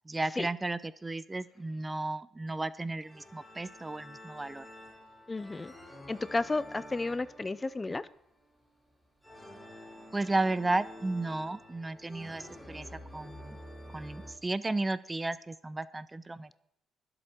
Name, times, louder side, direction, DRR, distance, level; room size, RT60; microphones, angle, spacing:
voice 1, 0.1-4.6 10.1-12.9 13.1-13.6 13.9-16.5, right 2 dB, 20° right, 17 dB, 0.6 m, -33 dB
sound 1, 3.0-14.3, left 1 dB, ahead, 5.1 m, -49 dB
voice 2, 5.3-5.7 6.1-8.0, left 3 dB, 20° left, 17 dB, 0.6 m, -32 dB
21.5 x 7.9 x 4.4 m, 0.76 s
cardioid pair, 90°, 0 cm